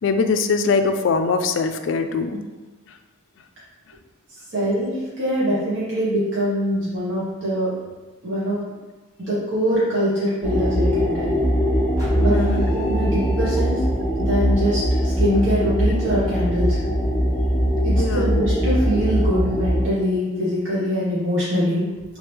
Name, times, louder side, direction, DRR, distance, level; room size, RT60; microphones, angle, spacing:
voice 1, 0.0-2.4 12.3-12.9 18.0-18.3, left 4 dB, 65° left, 8 dB, 0.3 m, -22 dB
voice 2, 4.5-7.7 8.2-8.6 9.3-11.4 12.1-12.4 12.7-13.8 14.2-16.8 17.2-17.3 17.8-21.8, equal, 65° right, -10 dB, 1.4 m, -23 dB
sound 1, 10.4-19.9, equal, 5° left, 0.8 m, -21 dB
sound 2, 12.0-14.1, equal, 15° right, 1.2 m, -37 dB
3.8 x 3.1 x 3.3 m, 1.2 s
head